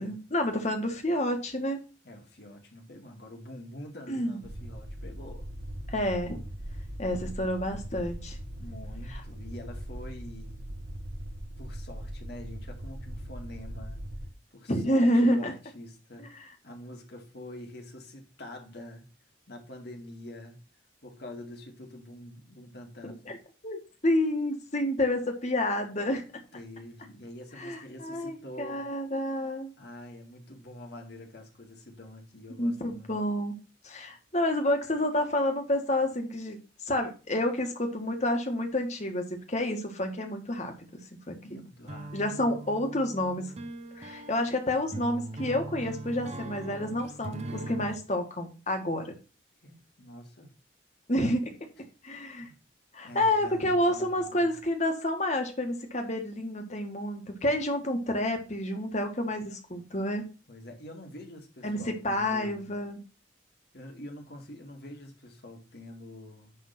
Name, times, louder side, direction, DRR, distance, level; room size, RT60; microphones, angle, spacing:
voice 1, 0.0-1.8 4.1-4.4 5.9-6.4 7.0-8.4 14.7-15.5 16.2-16.4 23.0-23.4 23.6-26.2 27.6-29.7 32.6-33.5 33.8-36.6 36.8-41.0 41.3-41.6 42.1-43.5 44.0-49.1 51.1-51.5 52.0-52.5 52.9-60.2 61.6-63.0, left 1 dB, 40° left, 1.6 m, -29 dB
voice 2, 2.0-5.5 8.6-10.6 11.6-14.0 14.5-19.1 19.5-20.6 21.0-23.2 26.5-28.9 29.8-33.2 41.4-42.4 49.6-50.5 52.3-52.6 53.0-54.5 60.5-62.8 63.7-66.6, left 1 dB, 60° left, 2.0 m, -46 dB
sound 1, 4.4-14.3, equal, 80° right, 1.6 m, -40 dB
sound 2, 41.9-48.0, right 2 dB, 35° right, 0.9 m, -40 dB
10.0 x 3.6 x 5.8 m
head